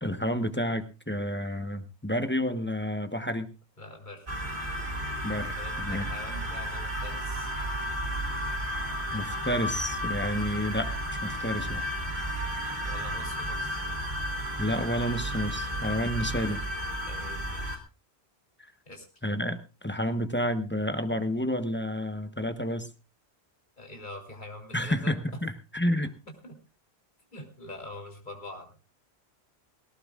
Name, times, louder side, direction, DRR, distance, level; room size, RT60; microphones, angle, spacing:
voice 1, 0.0-3.5 5.2-6.1 9.1-10.9 11.2-11.8 14.6-16.6 19.2-22.9 24.7-26.1, equal, 10° left, 8 dB, 1.0 m, -30 dB
voice 2, 3.8-4.3 5.6-7.5 12.8-13.8 17.1-17.8 18.8-19.0 23.8-25.1 26.4-26.5 27.3-28.7, left 1 dB, 45° left, 2 dB, 3.4 m, -44 dB
sound 1, 4.3-17.8, equal, 55° right, 2.3 m, -33 dB
18.5 x 18.0 x 2.4 m, 0.30 s
omnidirectional pair, 1.1 m